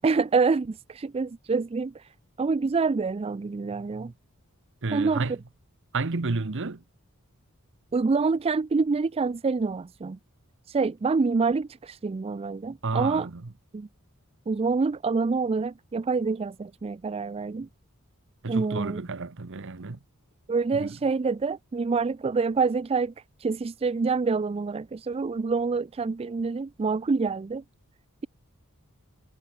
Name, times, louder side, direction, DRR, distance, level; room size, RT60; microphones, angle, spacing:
voice 1, 0.0-2.1 2.4-4.1 4.9-5.2 7.9-10.2 10.7-13.3 13.7-13.9 14.5-17.7 18.5-19.0 20.5-23.1 23.4-27.6, right 4 dB, 25° right, 0.3 m, -26 dB
voice 2, 4.8-5.4 5.9-6.8 12.8-13.5 18.4-20.0 20.7-21.0, right 3 dB, 60° right, 1.0 m, -31 dB
head